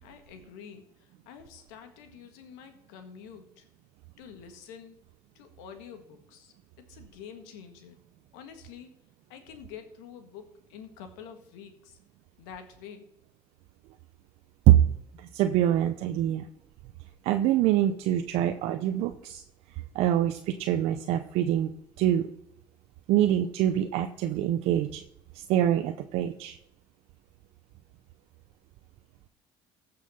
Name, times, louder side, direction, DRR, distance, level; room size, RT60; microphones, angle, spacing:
voice 1, 0.0-3.7 4.2-5.0 5.3-8.0 8.3-8.9 9.3-12.0 12.4-13.1, left 7 dB, 90° left, 7 dB, 1.7 m, -47 dB
voice 2, 15.2-16.5 17.2-19.4 19.9-22.3 23.1-25.0 25.3-26.6, right 12 dB, 75° right, 7 dB, 0.7 m, -25 dB
15.5 x 5.7 x 5.7 m, 0.77 s
supercardioid pair, 80°, 10 cm